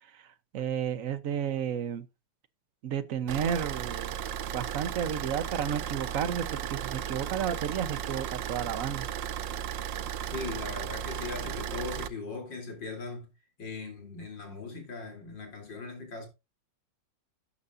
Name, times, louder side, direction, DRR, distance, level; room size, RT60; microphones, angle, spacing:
voice 1, 0.5-2.1 2.8-4.1 4.5-9.1, right 8 dB, 55° right, 1.2 m, -32 dB
Car / Idling, 3.3-12.1, right 10 dB, 85° right, 1.4 m, -35 dB
voice 2, 10.3-13.3 13.6-16.3, left 3 dB, 90° left, 4.1 m, -39 dB
12.5 x 9.8 x 2.6 m
omnidirectional pair, 1.9 m